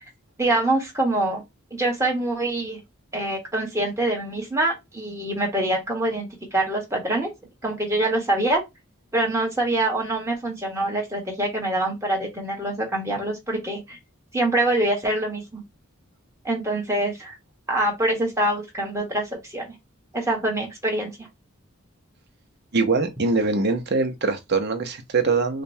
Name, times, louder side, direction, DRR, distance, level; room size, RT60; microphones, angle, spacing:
voice 1, 0.4-1.4 1.7-2.8 3.1-7.3 7.6-8.6 9.1-14.0 14.3-15.6 16.4-17.4 17.7-19.7 20.1-21.1, right 1 dB, 15° right, 1.3 m, -25 dB
voice 2, 22.7-25.6, right 3 dB, 55° right, 0.8 m, -23 dB
5.0 x 2.2 x 2.7 m
head